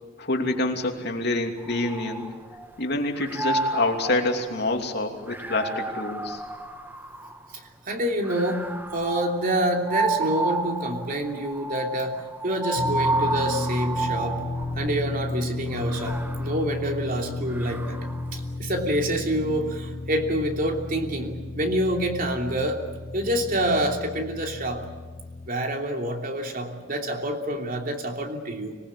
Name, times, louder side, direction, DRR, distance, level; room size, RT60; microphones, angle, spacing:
voice 1, 0.2-2.2 2.8-6.4, left 2 dB, 60° left, 3 dB, 2.8 m, -27 dB
sound 1, 1.6-2.8 3.2-7.6 8.2-14.9 15.7-18.3, right 3 dB, 10° right, 1.2 m, -31 dB
voice 2, 7.9-8.6 8.9-14.5 14.8-18.0 18.3-22.8 23.1-24.8 25.5-28.8, right 1 dB, 50° right, 2 dB, 3.0 m, -27 dB
sound 2, 12.8-25.5, left 2 dB, 35° left, 0.6 m, -33 dB
25.5 x 20.0 x 8.6 m, 1.4 s
head